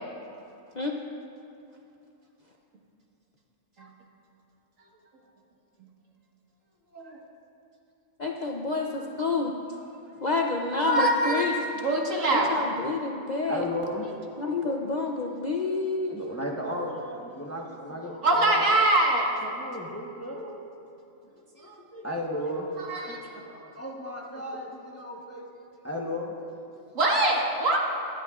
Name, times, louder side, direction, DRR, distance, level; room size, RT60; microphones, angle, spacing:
voice 1, 8.2-9.5 10.2-11.6 12.3-13.7 14.4-16.2, left 3 dB, 45° left, 1 dB, 0.6 m, -28 dB
voice 2, 9.7-10.1 12.0-12.5 13.5-14.3 16.1-18.9 19.4-20.6 21.3-25.5 25.8-26.6, equal, 10° left, -1 dB, 0.9 m, -35 dB
voice 3, 10.8-11.5 11.8-12.5 18.2-19.3 22.9-23.2 27.0-27.8, right 2 dB, 70° right, -2 dB, 2.0 m, -23 dB
24.0 x 11.0 x 2.4 m, 2.8 s
omnidirectional pair, 1.4 m